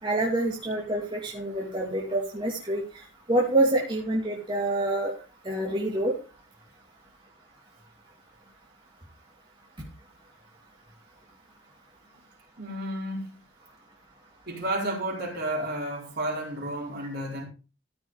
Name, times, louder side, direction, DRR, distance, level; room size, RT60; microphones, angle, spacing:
voice 1, 0.0-2.8 3.3-5.1 5.4-6.2, right 1 dB, 25° right, 2.6 m, -26 dB
voice 2, 12.6-13.3 14.5-17.4, right 1 dB, 55° right, 4.8 m, -32 dB
14.0 x 6.1 x 5.0 m
head